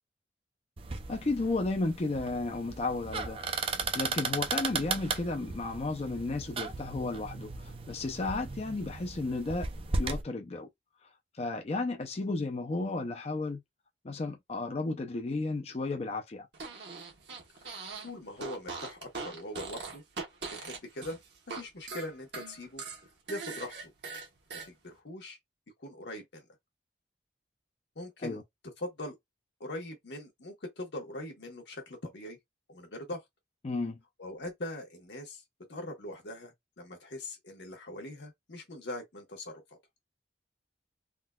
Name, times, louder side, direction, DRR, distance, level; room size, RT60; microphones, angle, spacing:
sound 1, 0.8-10.2, right 4 dB, 30° right, 0.4 m, -36 dB
voice 1, 1.1-3.4 3.9-9.7 10.0-10.7 11.4-13.6 14.0-16.5 28.2-28.4 33.6-34.0, left 2 dB, 35° left, 0.5 m, -33 dB
Fart, 16.5-18.1 18.4-21.6 21.9-24.7, right 4 dB, 75° right, 1.1 m, -41 dB
voice 2, 18.0-20.0 20.4-21.2 21.5-22.8 23.3-23.9 24.6-25.4 25.8-26.5 28.0-28.4 28.8-29.2 29.6-32.4 32.7-33.2 34.2-35.4 35.7-39.6, left 1 dB, 80° left, 1.1 m, -41 dB
3.6 x 2.3 x 2.3 m
head